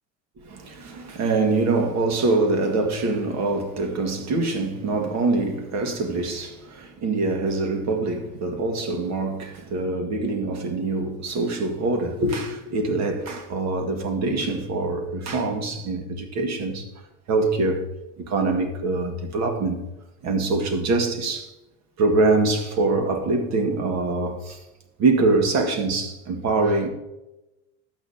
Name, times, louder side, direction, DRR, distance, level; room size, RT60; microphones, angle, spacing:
voice 1, 0.4-16.9 17.3-17.8 18.2-19.8 20.2-21.5 22.0-24.6 25.0-26.9, right 3 dB, 50° right, 1.9 m, -24 dB
11.5 x 8.5 x 2.8 m
hypercardioid pair, 85°, 36 cm